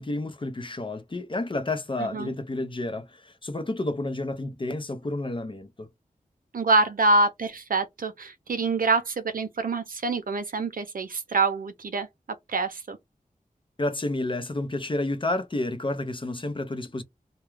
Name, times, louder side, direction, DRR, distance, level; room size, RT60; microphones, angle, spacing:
voice 1, 0.0-5.9 13.8-17.0, left 2 dB, 35° left, 0.6 m, -30 dB
voice 2, 2.0-2.3 6.5-12.1 12.5-13.0, right 3 dB, 75° right, 0.6 m, -25 dB
2.3 x 2.2 x 3.1 m
wide cardioid pair, 65°, 15 cm